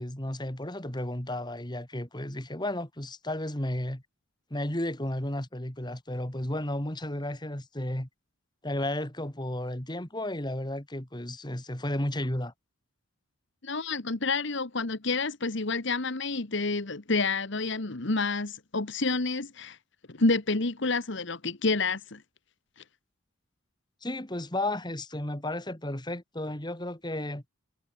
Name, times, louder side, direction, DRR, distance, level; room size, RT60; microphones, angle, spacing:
voice 1, 0.0-4.0 4.5-8.1 8.6-12.5 24.0-27.4, left 1 dB, 20° left, 2.5 m, -33 dB
voice 2, 13.6-19.8 20.1-22.2, left 3 dB, 60° left, 1.5 m, -29 dB
head